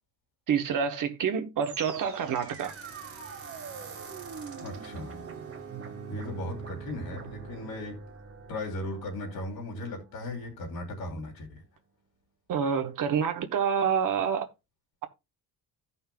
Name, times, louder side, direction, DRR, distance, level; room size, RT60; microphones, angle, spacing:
voice 1, 0.5-2.7 12.5-14.5, right 7 dB, 55° right, 1.3 m, -27 dB
sound 1, 1.6-10.8, right 5 dB, 40° right, 1.6 m, -43 dB
voice 2, 4.6-5.2 6.1-8.0 8.5-11.6, left 1 dB, 70° left, 3.1 m, -37 dB
16.0 x 5.6 x 2.3 m
cardioid pair, 170°, 37 cm